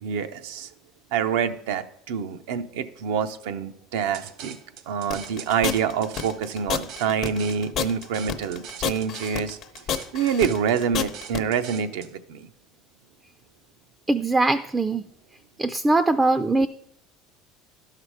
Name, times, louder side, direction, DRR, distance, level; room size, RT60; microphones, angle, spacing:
voice 1, 0.0-0.7 1.1-4.6 4.9-9.6 10.1-12.5, right 7 dB, 90° right, 8 dB, 0.6 m, -26 dB
sound 1, 4.1-12.1, right 7 dB, 65° right, 0.9 m, -42 dB
sound 2, 5.1-11.4, left 9 dB, 55° left, 0.7 m, -29 dB
voice 2, 14.1-15.0 15.6-16.7, right 2 dB, 15° right, 11 dB, 0.3 m, -21 dB
12.0 x 5.8 x 4.8 m, 0.73 s
supercardioid pair, 115°, 0 cm